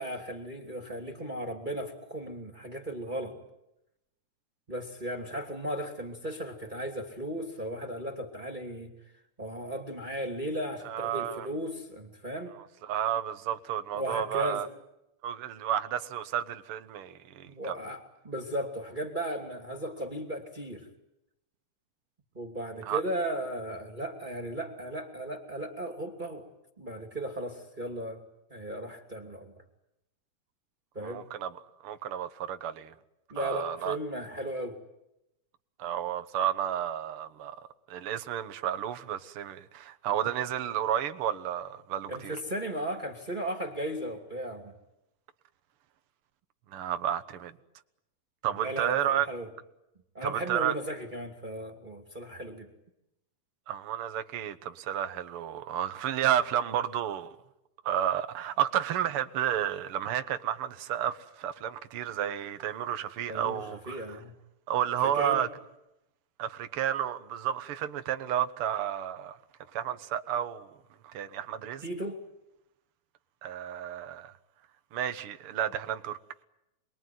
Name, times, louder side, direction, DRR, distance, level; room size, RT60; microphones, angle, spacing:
voice 1, 0.0-3.4 4.7-8.9 9.4-12.6 13.9-14.7 17.4-20.9 22.3-26.5 26.8-28.2 28.5-29.5 30.9-31.3 33.3-34.8 42.1-44.8 48.6-49.5 50.1-52.7 63.3-64.3 65.0-65.5 71.8-72.2, right 1 dB, 15° right, 2.5 m, -36 dB
voice 2, 10.9-11.5 12.9-14.7 15.2-17.7 22.9-23.0 31.0-31.5 31.8-32.9 33.4-34.0 35.8-37.6 37.9-42.4 46.7-47.6 48.4-49.3 50.2-50.7 53.7-57.4 57.9-64.0 64.7-65.5 66.4-69.4 69.7-70.7 71.0-71.8 73.4-74.3 74.9-76.2, right 10 dB, 55° right, 1.8 m, -31 dB
28.0 x 22.0 x 9.4 m
omnidirectional pair, 3.5 m